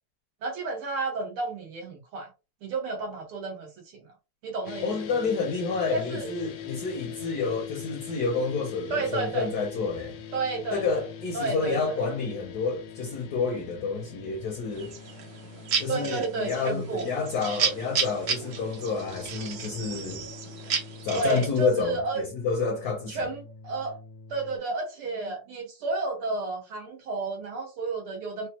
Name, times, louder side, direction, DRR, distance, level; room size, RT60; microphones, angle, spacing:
voice 1, 0.4-2.3 2.6-4.0 4.4-4.9 5.9-6.3 8.9-9.5 10.3-11.0 11.3-12.0 15.9-17.1 21.1-22.2 23.1-24.0 24.3-28.5, right 3 dB, 85° right, 2.3 m, -31 dB
sound 1, 4.7-24.6, left 7 dB, 85° left, 1.6 m, -43 dB
voice 2, 4.8-10.2 10.7-14.9 15.8-20.2 21.0-23.3, left 4 dB, 65° left, 1.0 m, -29 dB
sound 2, 14.7-21.7, right 6 dB, 60° right, 1.4 m, -33 dB
5.0 x 2.3 x 2.8 m
omnidirectional pair, 2.3 m